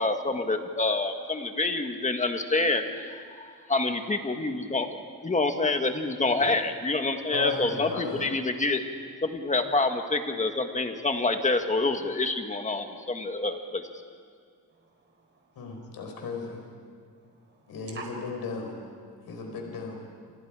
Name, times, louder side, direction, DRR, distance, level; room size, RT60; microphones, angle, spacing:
voice 1, 0.0-4.9 5.2-8.8 9.2-13.8, left 3 dB, 20° left, 5 dB, 1.7 m, -27 dB
voice 2, 7.3-8.3 15.6-16.6 17.7-18.7 19.3-20.0, left 5 dB, 80° left, 2 dB, 4.5 m, -35 dB
voice 3, 14.7-15.8 17.2-18.0, right 4 dB, 30° right, 1 dB, 4.5 m, -48 dB
29.5 x 27.0 x 5.0 m, 2.2 s
wide cardioid pair, 150°, 36 cm